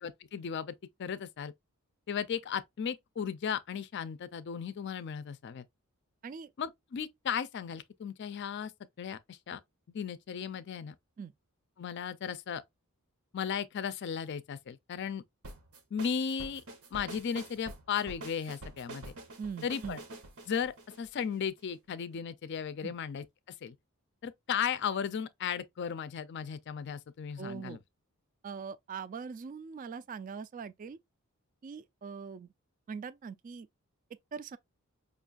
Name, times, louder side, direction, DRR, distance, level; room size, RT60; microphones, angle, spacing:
voice 1, 0.0-0.7 1.0-1.5 2.1-5.6 6.6-8.7 9.0-9.6 9.9-10.9 11.8-12.6 13.3-15.2 15.9-16.6 16.9-19.0 19.6-20.0 20.5-23.7 24.2-27.8, left 7 dB, 55° left, 0.4 m, -36 dB
sound 1, 15.4-21.7, right 1 dB, 85° right, 0.9 m, -47 dB
voice 2, 19.4-20.0 22.8-23.0 27.4-27.8 28.4-31.0 31.6-32.5 32.9-33.7 34.3-34.6, right 6 dB, 40° right, 0.3 m, -42 dB
5.0 x 2.3 x 2.4 m
head